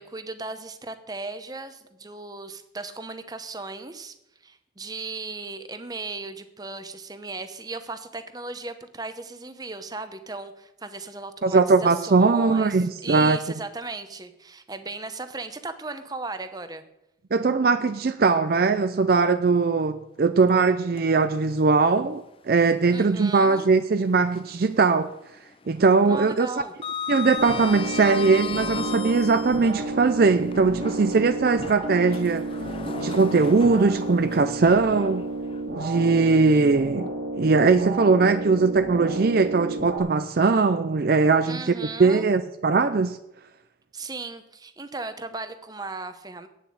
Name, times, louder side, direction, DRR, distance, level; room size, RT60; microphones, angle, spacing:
voice 1, 0.0-4.1 4.4-16.8 22.9-23.7 26.1-26.7 41.4-42.3 43.9-46.5, right 3 dB, 20° right, 0.8 m, -36 dB
voice 2, 11.4-13.4 17.3-25.1 25.7-26.5 27.1-32.5 33.0-35.2 35.8-37.1 37.4-41.7 42.0-43.2, right 4 dB, 50° right, 0.4 m, -20 dB
Sliding door, 20.5-21.5 21.9-22.0 23.7-24.7 25.0-25.4 25.6-29.7 30.4-35.6, left 6 dB, 30° left, 0.4 m, -37 dB
sound 1, 27.4-40.0, right 2 dB, 70° right, 2.9 m, -32 dB
9.0 x 7.4 x 8.6 m
head